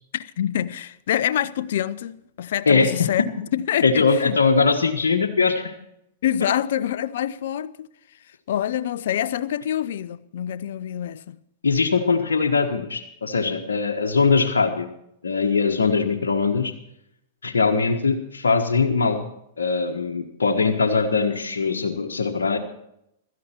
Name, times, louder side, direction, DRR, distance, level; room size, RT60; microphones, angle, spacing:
voice 1, 0.1-4.4 6.2-7.9 8.5-11.4, left 10 dB, 70° left, 0.7 m, -26 dB
voice 2, 2.7-3.1 3.8-5.7 11.6-14.9 15.2-16.7 17.4-19.2 19.6-22.6, left 4 dB, 90° left, 1.3 m, -21 dB
16.0 x 13.5 x 4.4 m
hypercardioid pair, 110°, 0 cm